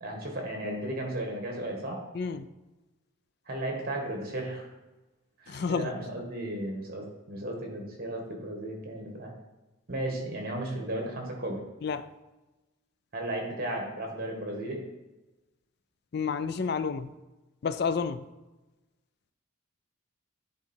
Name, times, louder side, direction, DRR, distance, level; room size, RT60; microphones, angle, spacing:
voice 1, 0.0-2.0 3.5-4.7 5.4-9.3 9.9-11.6 13.1-14.8, right 1 dB, 45° right, 1.7 m, -35 dB
voice 2, 2.1-2.5 5.5-5.9 11.8-12.1 16.1-17.1 17.6-18.3, left 5 dB, 50° left, 0.4 m, -30 dB
9.9 x 4.0 x 4.5 m
head